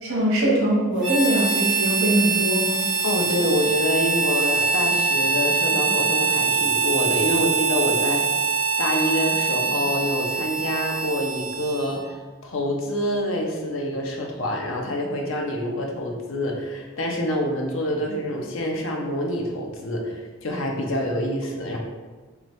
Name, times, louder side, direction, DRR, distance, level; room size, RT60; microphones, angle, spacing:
voice 1, 0.0-2.8, right 1 dB, 80° right, -4 dB, 1.3 m, -22 dB
Harmonica, 1.0-12.1, right 5 dB, 5° right, 0.9 m, -23 dB
voice 2, 3.0-12.0 12.4-21.8, equal, 70° left, 0 dB, 0.7 m, -26 dB
4.6 x 2.5 x 3.1 m, 1.3 s
head